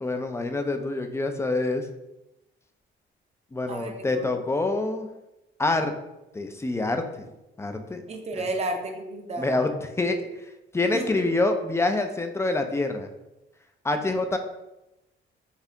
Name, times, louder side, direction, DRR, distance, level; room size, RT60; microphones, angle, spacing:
voice 1, 0.0-1.8 3.5-5.1 5.6-5.9 6.3-7.3 7.6-8.0 9.4-9.7 10.0-10.3 10.7-13.1 13.8-14.4, left 2 dB, 15° left, 6 dB, 0.4 m, -26 dB
voice 2, 3.7-4.3 8.1-9.5 10.9-11.1, right 2 dB, 35° right, 3 dB, 0.6 m, -32 dB
4.1 x 2.8 x 2.6 m, 0.95 s
cardioid pair, 90°, 20 cm